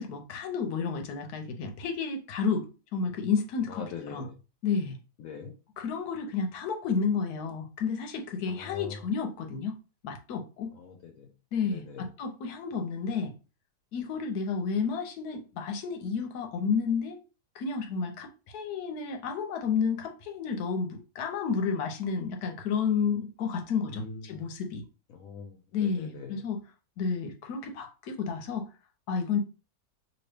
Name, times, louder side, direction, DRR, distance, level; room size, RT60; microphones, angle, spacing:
voice 1, 0.0-3.8 4.1-4.2 4.6-5.0 5.8-9.7 10.0-10.7 11.5-13.3 13.9-17.2 17.5-18.3 18.5-24.8 25.7-26.6 27.0-28.7 29.1-29.4, left 5 dB, 90° left, 1.2 m, -31 dB
voice 2, 3.7-4.3 5.2-5.5 8.5-9.1 10.7-11.3 11.6-12.1 23.9-24.4 25.1-26.3, left 5 dB, 70° left, 1.0 m, -43 dB
2.9 x 2.6 x 3.3 m
omnidirectional pair, 1.6 m